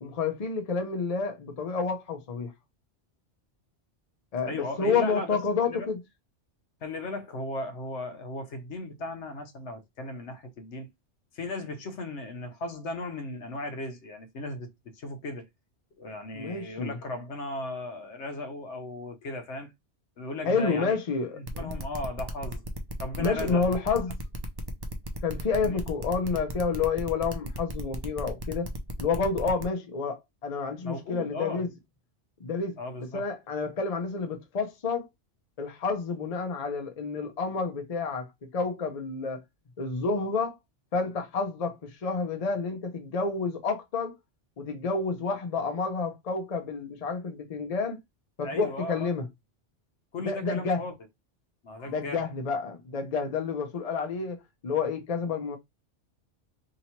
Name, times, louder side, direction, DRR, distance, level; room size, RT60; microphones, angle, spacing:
voice 1, 0.0-2.5 4.3-6.0 16.3-17.0 20.4-21.7 23.2-24.2 25.2-28.7 29.0-31.7 32.4-32.8 33.1-35.0 35.6-39.4 39.8-40.6 40.9-44.2 44.6-48.0 48.4-49.3 50.2-50.8 51.9-54.4 54.6-55.6, left 4 dB, 40° left, 0.7 m, -29 dB
voice 2, 4.5-5.4 5.6-5.9 6.8-10.9 11.3-15.5 16.0-19.7 20.2-21.0 21.3-22.6 23.0-23.7 25.5-25.8 30.8-31.6 32.8-33.2 48.4-49.1 50.1-50.9 51.6-52.3, left 2 dB, 70° left, 1.1 m, -36 dB
sound 1, 21.5-29.6, right 1 dB, 35° right, 0.4 m, -37 dB
2.9 x 2.8 x 4.3 m
omnidirectional pair, 1.2 m